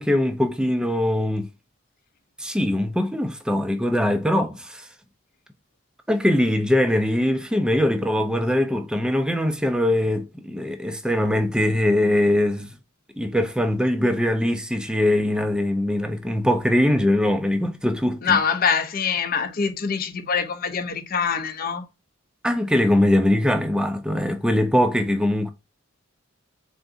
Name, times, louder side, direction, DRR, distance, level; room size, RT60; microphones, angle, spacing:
voice 1, 0.0-1.5 2.4-4.9 6.1-12.8 13.2-18.4 22.4-25.5, left 1 dB, 5° right, 0.4 m, -22 dB
voice 2, 18.2-21.9, left 6 dB, 45° left, 0.5 m, -24 dB
3.8 x 3.5 x 2.6 m
head